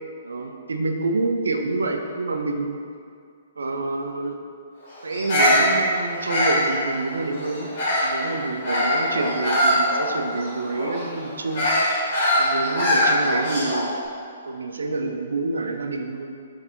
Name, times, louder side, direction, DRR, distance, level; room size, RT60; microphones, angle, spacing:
voice 1, 0.2-2.8 3.6-4.4 5.0-7.7 8.0-11.7 12.4-13.9 14.5-16.4, right 3 dB, 75° right, 4 dB, 0.3 m, -27 dB
Bird vocalization bird call bird song, 5.1-8.2 8.6-13.9, left 1 dB, 50° left, 1.4 m, -22 dB
3.9 x 2.7 x 2.6 m, 2.3 s
figure-of-eight pair, 120°, 0 cm